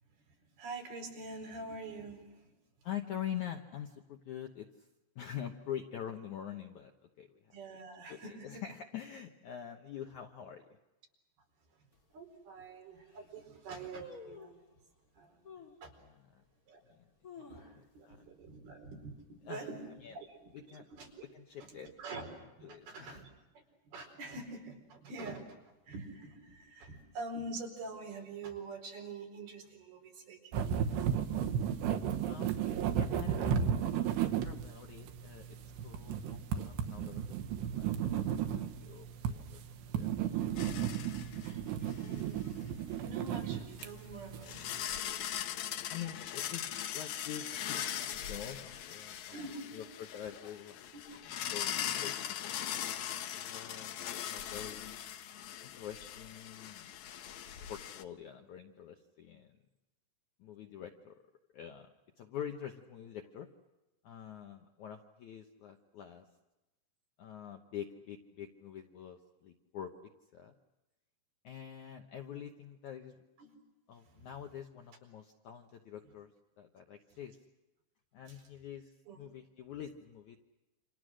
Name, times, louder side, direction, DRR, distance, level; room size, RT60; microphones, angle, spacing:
voice 1, 0.6-2.5 7.5-8.6 12.1-14.6 15.1-15.4 15.8-15.9 16.7-16.8 17.5-17.7 17.9-19.8 20.1-21.2 21.6-21.7 22.0-22.3 22.6-23.3 23.9-30.7 40.3-40.5 41.4-41.6 42.0-42.6 43.0-44.6 47.8-47.9 49.3-49.8 50.9-51.0 73.4-73.5 74.1-74.3 78.3-78.4 79.1-79.2, right 3 dB, 65° right, 2 dB, 6.3 m, -46 dB
voice 2, 2.8-4.9 5.2-6.9 7.2-7.6 8.1-10.6 16.0-16.4 16.9-17.1 17.4-18.2 19.4-20.2 20.5-20.9 21.3-21.9 22.6-23.2 32.3-37.3 37.7-38.2 38.5-40.5 45.9-49.4 49.7-50.9 51.5-52.9 53.3-55.0 55.6-56.9 57.7-59.6 60.4-61.2 61.5-63.5 64.0-66.3 67.2-69.9 70.3-70.5 71.4-73.2 73.9-76.3 76.6-77.4 78.1-80.4, left 9 dB, 70° left, 4 dB, 1.9 m, -46 dB
sound 1, 11.9-12.0 12.6-12.7 12.9-13.3 13.9-14.7 15.4-15.8 16.4-16.5 17.0-18.1 18.4-18.5 18.8-19.2 19.6-20.0 20.6-21.4 21.6-21.7, left 2 dB, 25° left, 2.3 m, -51 dB
sound 2, 30.5-44.8, right 8 dB, 85° right, 3.4 m, -34 dB
sound 3, 40.6-41.6 41.9-42.1 43.8-43.9 44.4-58.0, left 10 dB, 85° left, 1.6 m, -40 dB
29.5 x 26.5 x 6.4 m, 1.0 s
omnidirectional pair, 4.7 m